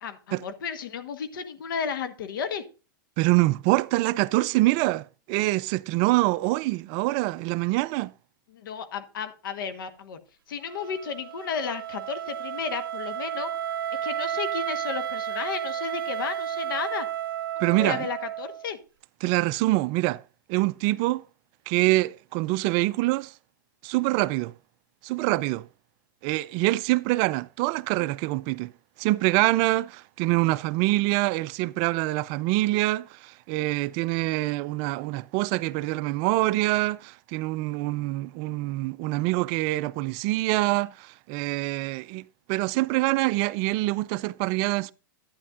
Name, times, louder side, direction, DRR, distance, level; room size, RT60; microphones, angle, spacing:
voice 1, 0.0-2.6 8.5-10.2 10.5-13.5 14.0-17.1 17.6-18.8, left 6 dB, 70° left, 1.2 m, -33 dB
voice 2, 3.2-8.1 17.6-18.1 19.2-20.2 20.5-21.2 21.7-23.3 23.8-24.5 25.0-25.7 26.2-28.7 29.0-44.9, right 19 dB, 45° right, 0.3 m, -25 dB
Wind instrument woodwind instrument, 10.6-18.7, right 10 dB, 85° right, 0.6 m, -32 dB
11.0 x 9.3 x 2.4 m
hypercardioid pair, 115°, 11 cm